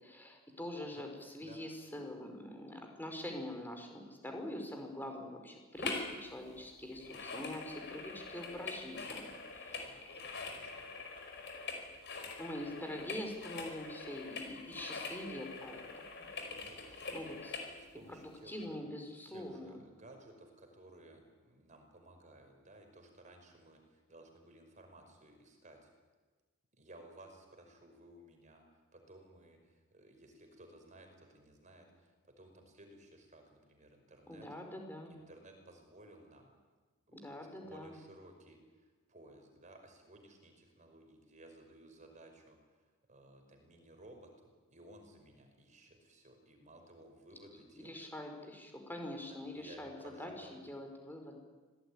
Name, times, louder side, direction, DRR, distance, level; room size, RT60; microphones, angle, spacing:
voice 1, 0.0-9.3 9.5-9.8 12.4-16.3 17.1-17.5 18.1-19.8 34.3-35.1 37.1-37.9 47.7-51.4, left 1 dB, 10° left, 3 dB, 5.0 m, -44 dB
sound 1, 5.8-6.1 6.4-17.7 18.2-18.3, left 4 dB, 55° left, 5.3 m, -44 dB
voice 2, 9.6-10.9 16.4-18.8 19.3-25.9 26.7-28.6 28.9-34.5 35.1-36.5 37.1-42.6 43.1-48.1 49.2-50.6, right 1 dB, 35° right, 4 dB, 5.5 m, -57 dB
26.0 x 19.0 x 10.0 m, 1.3 s
head